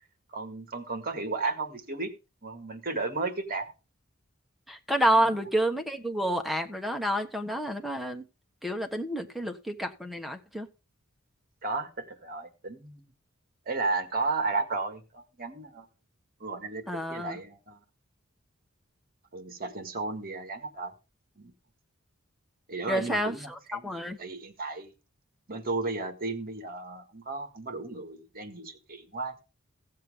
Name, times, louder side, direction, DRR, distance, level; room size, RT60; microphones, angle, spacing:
voice 1, 0.3-2.1 2.4-3.7 5.1-5.4 11.6-13.1 13.7-15.9 16.4-17.8 19.3-20.9 21.4-21.5 22.7-24.9 25.5-29.4, right 3 dB, 45° right, 1.9 m, -34 dB
voice 2, 4.7-8.2 8.6-10.7 16.9-17.4 22.9-24.2, right 1 dB, ahead, 1.2 m, -29 dB
16.0 x 7.5 x 3.6 m
head